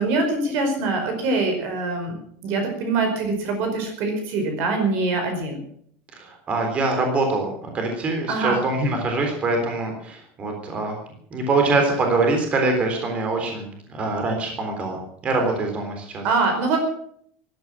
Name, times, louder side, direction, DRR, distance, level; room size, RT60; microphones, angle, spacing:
voice 1, 0.0-2.2 2.4-5.6 8.3-8.6 16.2-16.8, right 3 dB, 50° right, 4 dB, 5.0 m, -23 dB
voice 2, 6.1-11.0 11.3-16.2, right 3 dB, 25° right, 3 dB, 3.6 m, -24 dB
15.5 x 11.5 x 7.6 m, 0.63 s
cardioid pair, 170°, 5 cm